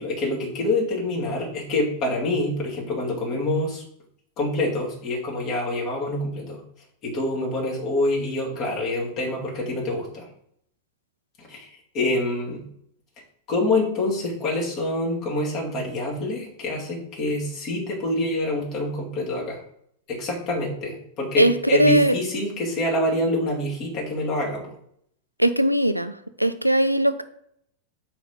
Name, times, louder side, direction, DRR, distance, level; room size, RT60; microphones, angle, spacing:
voice 1, 0.0-3.8 4.4-6.6 7.0-10.3 11.4-12.6 13.5-19.6 20.1-24.7, left 1 dB, 35° left, -2 dB, 2.3 m, -26 dB
voice 2, 21.8-22.1 25.4-27.2, equal, 90° right, 11 dB, 0.4 m, -20 dB
4.5 x 4.3 x 5.1 m, 0.71 s
figure-of-eight pair, 90°, 0 cm